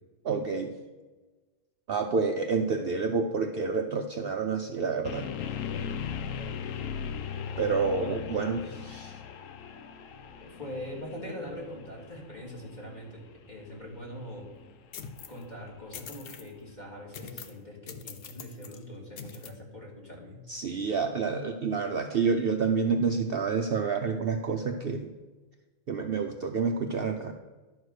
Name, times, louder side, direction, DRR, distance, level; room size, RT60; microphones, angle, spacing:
voice 1, 0.2-0.7 1.9-5.3 7.6-9.2 20.5-25.1 25.9-27.3, right 5 dB, 55° right, 4 dB, 0.7 m, -28 dB
sound 1, 5.0-17.0, left 7 dB, 75° left, 1.1 m, -39 dB
voice 2, 10.4-14.5 15.3-20.4, equal, 35° left, -2 dB, 2.4 m, -42 dB
sound 2, 14.9-15.4 15.9-16.5 17.1-17.6 17.9-18.8 19.2-19.5, left 6 dB, 55° left, 0.8 m, -43 dB
11.0 x 4.8 x 6.4 m, 1.2 s
omnidirectional pair, 1.4 m